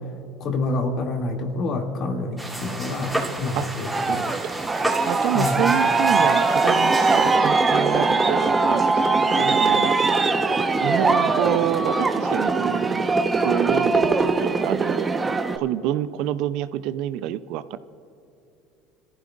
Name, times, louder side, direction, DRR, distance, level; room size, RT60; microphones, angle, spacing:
voice 1, 0.4-4.3 5.3-5.6, left 2 dB, 50° left, 1 dB, 2.5 m, -27 dB
sound 1, 2.4-7.4, right 1 dB, ahead, 2.8 m, -31 dB
Aircraft, 3.9-15.6, right 3 dB, 20° right, 1.0 m, -21 dB
voice 2, 4.1-4.5 5.1-10.2 10.8-15.1 15.5-17.8, right 12 dB, 65° right, 14 dB, 0.5 m, -28 dB
27.0 x 14.5 x 2.5 m, 2.7 s
hypercardioid pair, 85°, 0 cm